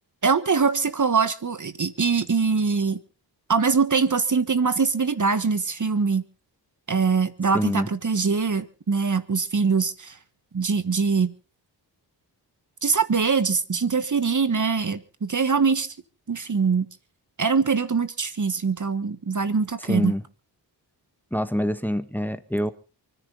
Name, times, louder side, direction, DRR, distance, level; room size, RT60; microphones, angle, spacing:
voice 1, 0.2-3.0 3.5-6.2 6.9-10.2 10.5-11.3 12.8-15.9 16.3-16.9 17.4-20.1, right 5 dB, 45° right, 1.5 m, -23 dB
voice 2, 7.5-7.9 19.8-20.2 21.3-22.7, equal, 5° left, 1.6 m, -26 dB
28.5 x 10.5 x 4.0 m
cardioid pair, 65°, 42 cm